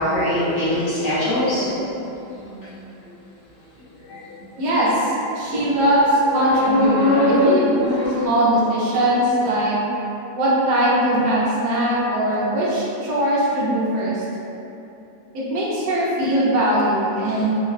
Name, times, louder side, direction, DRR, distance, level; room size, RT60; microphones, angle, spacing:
voice 1, 0.0-1.9 2.4-2.6 4.1-4.2 5.5-5.6 6.3-8.2, left 1 dB, 50° left, -13 dB, 1.3 m, -20 dB
voice 2, 4.6-7.5 8.2-9.8 10.3-14.2 15.3-17.6, right 1 dB, 75° right, -7 dB, 1.3 m, -20 dB
4.8 x 2.2 x 2.4 m, 2.9 s
omnidirectional pair, 1.9 m